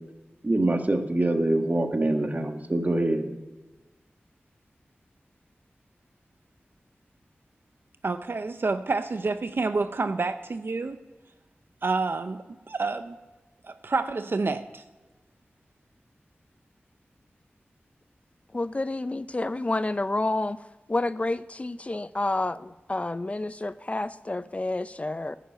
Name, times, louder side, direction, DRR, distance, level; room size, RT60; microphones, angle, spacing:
voice 1, 0.4-3.2, right 2 dB, 40° right, 5 dB, 1.4 m, -24 dB
voice 2, 8.0-11.0 11.8-13.2 13.6-14.8, right 3 dB, 60° right, 10 dB, 0.6 m, -28 dB
voice 3, 18.5-20.6 20.9-25.4, left 2 dB, 30° left, 15 dB, 0.4 m, -29 dB
10.5 x 9.2 x 5.6 m, 1.2 s
wide cardioid pair, 55°, 4 cm